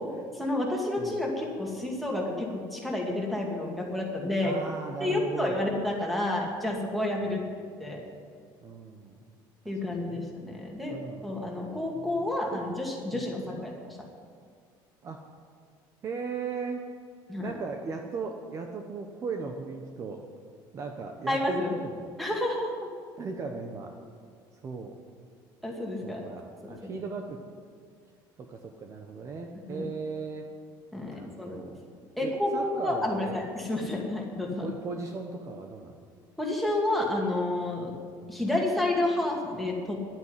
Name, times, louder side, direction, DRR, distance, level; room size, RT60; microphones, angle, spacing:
voice 1, 0.4-4.5 5.0-7.4 7.8-8.0 9.7-10.9 11.2-13.9 17.3-17.5 21.3-21.7 22.2-22.9 25.6-26.2 26.6-26.7 29.7-29.8 30.9-31.7 32.2-34.7 36.4-37.9 38.3-40.0, left 1 dB, ahead, -2 dB, 2.4 m, -30 dB
voice 2, 1.0-1.3 4.4-5.7 7.2-7.5 8.6-9.2 9.6-10.3 10.9-11.4 11.9-12.1 12.5-12.6 13.1-13.7 15.0-15.2 16.0-16.8 17.4-20.2 20.7-22.1 23.2-24.0 24.5-24.9 26.0-27.4 28.4-30.5 31.1-31.8 32.2-33.4 34.6-36.0 38.2-38.3, right 4 dB, 35° right, 3 dB, 1.0 m, -37 dB
11.0 x 9.1 x 9.8 m, 2.1 s
cardioid pair, 145°, 9 cm